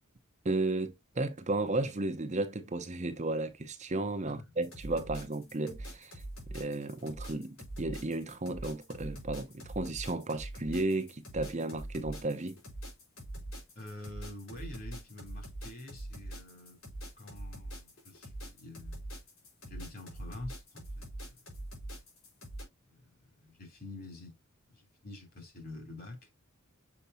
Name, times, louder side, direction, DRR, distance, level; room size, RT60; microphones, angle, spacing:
voice 1, 0.4-6.2 6.5-12.6, right 2 dB, 35° right, 0.7 m, -34 dB
sound 1, 4.6-22.6, right 1 dB, 65° left, 4.2 m, -44 dB
voice 2, 13.7-16.8 17.2-19.0 19.6-21.4 22.9-23.1 23.4-24.4 24.7-26.3, left 2 dB, 45° left, 2.9 m, -47 dB
6.9 x 5.2 x 2.6 m
head